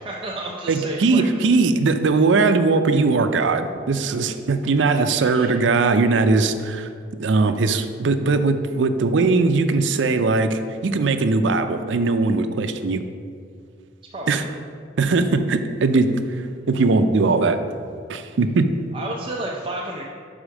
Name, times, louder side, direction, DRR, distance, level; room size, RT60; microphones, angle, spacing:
voice 1, 0.0-1.5 5.2-5.6 14.1-14.6 18.9-20.1, right 1 dB, 30° right, -2 dB, 0.5 m, -32 dB
voice 2, 0.7-6.9 7.2-13.0 14.3-14.4 15.0-16.4 16.7-17.6 18.1-18.7, right 3 dB, 80° right, 9 dB, 0.5 m, -20 dB
5.6 x 4.9 x 6.2 m, 2.2 s
head